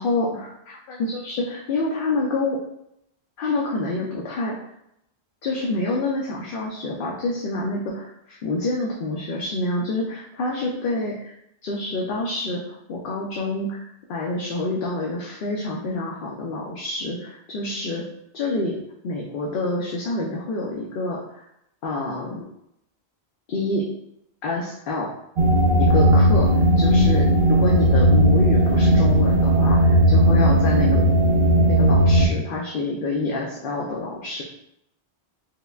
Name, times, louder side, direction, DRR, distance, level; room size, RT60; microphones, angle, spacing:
voice 1, 0.0-2.6 3.4-4.6 5.4-11.3 11.6-18.0 18.3-18.7 19.0-21.4 21.8-22.5 23.5-23.8 24.4-25.1 25.8-31.0 31.7-34.4, left 2 dB, 60° left, -3 dB, 0.7 m, -27 dB
sound 1, 25.4-32.3, right 1 dB, 65° right, 0.8 m, -16 dB
4.8 x 2.1 x 2.3 m, 0.78 s
omnidirectional pair, 1.1 m